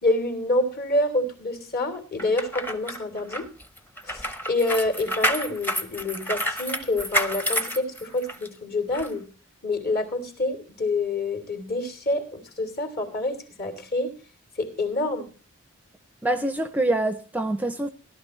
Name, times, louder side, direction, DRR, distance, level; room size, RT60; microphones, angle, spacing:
voice 1, 0.0-3.5 4.1-9.2 9.6-14.2 14.6-15.3, left 2 dB, 50° left, 3.2 m, -27 dB
sound 1, 2.2-8.5 8.9-9.1, equal, 10° left, 0.9 m, -29 dB
voice 2, 16.2-17.9, right 1 dB, 10° right, 0.6 m, -25 dB
17.0 x 12.0 x 3.2 m
head